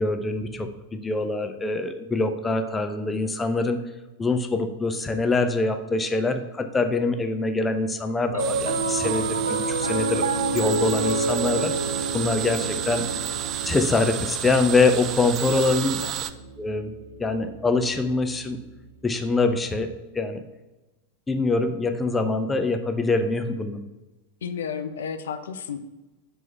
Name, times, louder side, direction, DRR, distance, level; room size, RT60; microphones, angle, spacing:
voice 1, 0.0-3.8 4.2-11.7 12.1-13.0 13.6-16.0 16.6-16.9 17.2-18.6 19.0-20.4 21.3-23.8, left 3 dB, 15° left, 8 dB, 0.6 m, -24 dB
Piano, 8.3-18.8, right 3 dB, 70° right, 0.6 m, -30 dB
sound 1, 8.4-16.3, right 11 dB, 35° right, 0.3 m, -31 dB
voice 2, 15.7-16.1 24.4-25.8, left 7 dB, 65° left, 10 dB, 0.5 m, -32 dB
5.5 x 4.6 x 5.6 m, 1.1 s
figure-of-eight pair, 90°, 0 cm